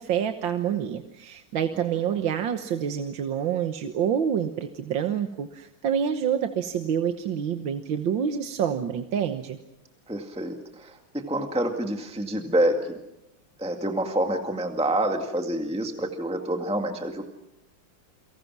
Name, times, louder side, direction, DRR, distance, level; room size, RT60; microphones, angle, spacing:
voice 1, 0.0-9.6, right 8 dB, 70° right, 7 dB, 1.9 m, -27 dB
voice 2, 10.1-13.0 13.6-17.2, right 1 dB, 5° right, 4 dB, 1.9 m, -27 dB
29.5 x 24.5 x 6.1 m, 0.89 s
omnidirectional pair, 2.2 m